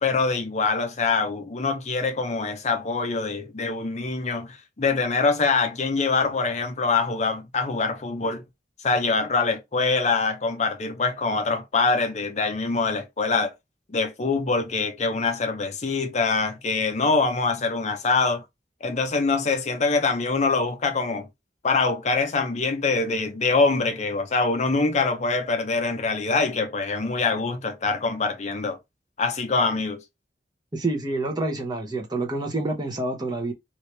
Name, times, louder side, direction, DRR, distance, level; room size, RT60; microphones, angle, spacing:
voice 1, 0.0-8.4 8.8-13.5 13.9-18.4 18.8-21.3 21.6-28.8 29.2-30.0, left 4 dB, 40° left, 0.6 m, -24 dB
voice 2, 30.7-33.5, right 2 dB, 25° right, 0.8 m, -27 dB
3.1 x 2.7 x 3.2 m
head